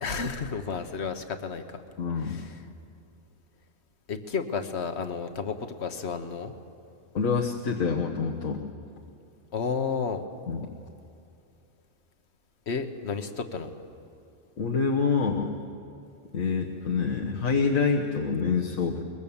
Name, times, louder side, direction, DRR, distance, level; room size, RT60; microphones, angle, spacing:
voice 1, 0.0-1.8 2.2-2.6 4.1-6.5 9.5-10.3 12.7-13.7, left 5 dB, 50° left, 8 dB, 1.4 m, -32 dB
voice 2, 2.0-2.4 7.1-8.6 10.5-10.7 14.6-15.6 16.3-19.0, left 5 dB, 70° left, 0 dB, 1.6 m, -26 dB
23.0 x 22.0 x 7.2 m, 2.6 s
omnidirectional pair, 1.5 m